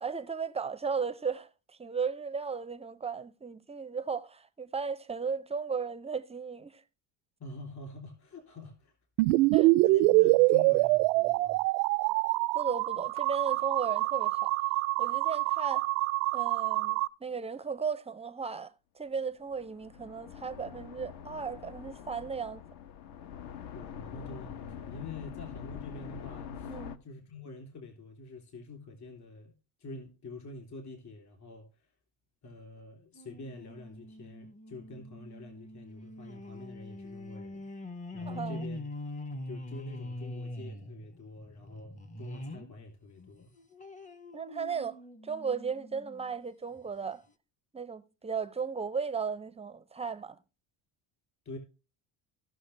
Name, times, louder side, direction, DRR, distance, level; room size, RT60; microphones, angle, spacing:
voice 1, 0.0-1.5 1.8-6.8 9.5-9.7 12.5-14.5 15.0-15.9 16.3-22.6 26.7-27.0 38.3-38.7 44.3-47.2 47.7-50.4, right 5 dB, 15° right, 0.5 m, -35 dB
voice 2, 7.4-8.9 9.2-9.4 9.8-11.6 23.7-29.5 29.8-31.8 32.4-38.9 39.5-43.5 51.5-51.6, left 3 dB, 40° left, 3.5 m, -46 dB
sound 1, 9.2-17.1, right 21 dB, 90° right, 0.5 m, -25 dB
sound 2, 19.4-27.0, left 8 dB, 65° left, 1.1 m, -44 dB
sound 3, 33.1-42.7 43.2-46.3 46.8-46.9 47.1-47.2, left 1 dB, 20° left, 0.8 m, -43 dB
16.5 x 6.3 x 3.3 m
supercardioid pair, 110°, 42 cm